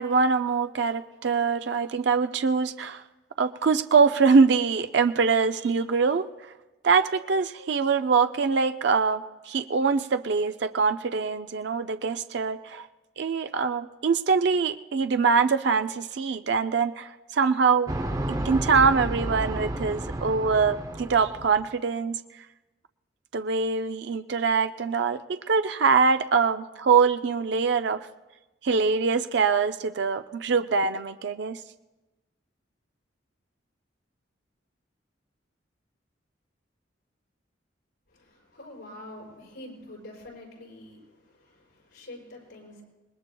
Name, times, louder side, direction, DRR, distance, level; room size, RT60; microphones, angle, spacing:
voice 1, 0.0-3.0 3.4-6.3 6.8-12.9 13.2-17.9 18.3-22.2 23.3-28.1 28.6-31.6, right 5 dB, 65° right, 9 dB, 0.4 m, -23 dB
sound 1, 17.9-21.7, right 1 dB, 20° right, 0.6 m, -31 dB
voice 2, 38.1-42.8, left 1 dB, 90° left, -2 dB, 6.1 m, -46 dB
26.0 x 20.0 x 2.3 m, 1.1 s
head